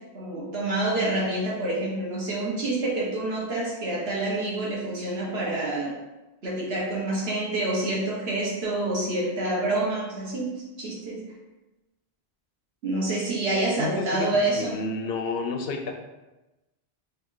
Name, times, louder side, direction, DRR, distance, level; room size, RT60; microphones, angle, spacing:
voice 1, 0.0-6.0 6.4-11.3 12.8-14.8, right 2 dB, 75° right, -5 dB, 1.4 m, -27 dB
voice 2, 13.8-15.9, left 3 dB, 70° left, 3 dB, 0.7 m, -30 dB
3.6 x 2.7 x 3.8 m, 1.1 s
omnidirectional pair, 1.1 m